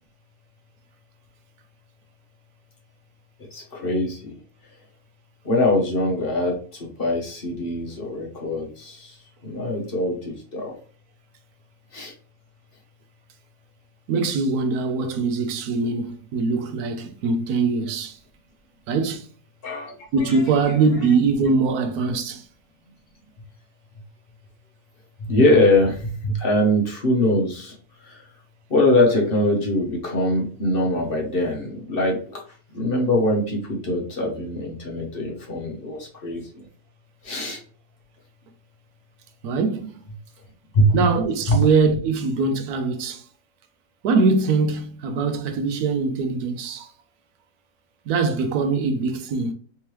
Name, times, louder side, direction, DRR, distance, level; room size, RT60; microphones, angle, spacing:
voice 1, 3.5-4.4 4.6-4.7 5.4-9.2 9.4-10.8 11.9-12.1 19.6-19.9 20.2-20.8 25.2-28.2 28.7-36.5 37.2-37.6 40.7-41.0 41.5-41.6, left 1 dB, 45° left, 1.0 m, -23 dB
voice 2, 14.1-18.2 18.9-19.3 20.1-22.4 39.4-39.9 40.9-43.2 44.0-46.9 48.1-49.5, right 4 dB, 85° right, 1.1 m, -22 dB
3.5 x 3.2 x 3.0 m
omnidirectional pair, 1.6 m